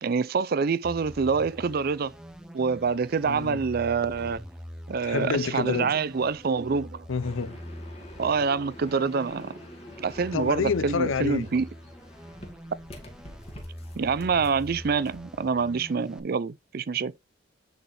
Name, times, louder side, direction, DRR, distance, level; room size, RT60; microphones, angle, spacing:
voice 1, 0.0-2.1 2.5-4.4 4.9-7.0 8.2-9.5 10.0-11.7 14.0-17.1, right 5 dB, 50° right, 0.4 m, -26 dB
sound 1, 0.8-16.2, equal, 5° right, 0.6 m, -44 dB
voice 2, 3.3-3.6 5.0-5.9 7.1-7.6 10.3-11.5, left 5 dB, 75° left, 0.5 m, -28 dB
sound 2, 7.2-15.2, left 1 dB, 30° left, 1.9 m, -47 dB
10.0 x 4.2 x 3.3 m
head